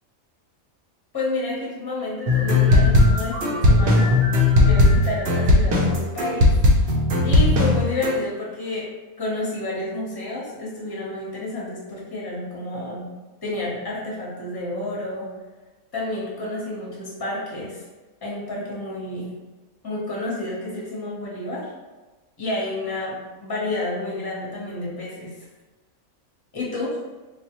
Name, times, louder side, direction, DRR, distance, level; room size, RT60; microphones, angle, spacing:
voice 1, 1.1-4.1 4.6-6.5 7.2-8.9 9.2-13.1 13.4-15.3 15.9-17.8 18.2-19.3 19.8-21.7 22.4-25.3 26.5-27.0, left 2 dB, 20° left, -5 dB, 0.7 m, -30 dB
sound 1, 2.3-8.1, left 2 dB, 60° right, 0.7 m, -17 dB
3.4 x 2.3 x 2.9 m, 1.2 s
omnidirectional pair, 1.5 m